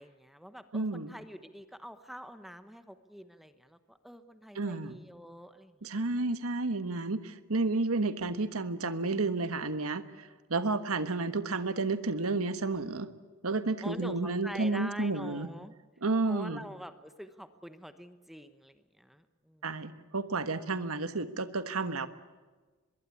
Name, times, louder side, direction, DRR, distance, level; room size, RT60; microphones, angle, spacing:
voice 1, 0.0-5.7 6.1-6.2 13.8-15.7 16.3-19.7, equal, ahead, 10 dB, 1.0 m, -46 dB
voice 2, 0.7-1.1 4.5-5.0 5.8-13.1 13.4-15.5 16.0-16.6 19.6-22.1, right 3 dB, 80° right, 11 dB, 1.3 m, -31 dB
24.5 x 22.0 x 8.4 m, 1.3 s
head